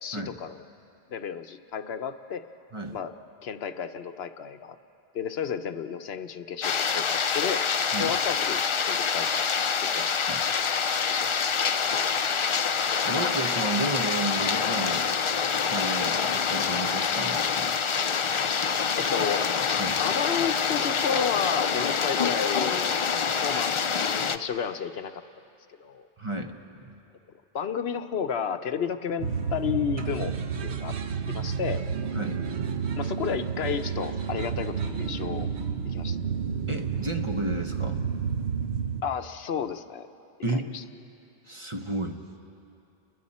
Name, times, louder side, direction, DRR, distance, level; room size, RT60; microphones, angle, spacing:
voice 1, 0.0-0.6 1.1-2.4 2.9-3.1 3.4-4.8 5.1-7.6 8.0-8.6 8.8-9.5 9.8-10.1 10.4-10.8 11.1-11.5 19.0-19.4 20.0-23.1 23.4-25.2 25.8-26.1 27.5-31.0 31.3-31.8 33.0-35.5 35.8-36.2 39.0-40.1 40.5-40.8, left 7 dB, 75° left, 9 dB, 1.0 m, -32 dB
sound 1, 6.6-24.4, left 6 dB, 45° left, 0.4 m, -26 dB
voice 2, 13.0-15.1 15.6-17.7 19.8-20.0 26.2-26.6 26.8-26.9 32.1-32.4 36.7-38.1 40.4-40.7 41.5-42.2, right 2 dB, 30° right, 4 dB, 1.1 m, -32 dB
sound 2, 29.2-39.0, right 6 dB, 90° right, 1.1 m, -30 dB
30.0 x 21.5 x 4.3 m, 2.7 s
omnidirectional pair, 1.1 m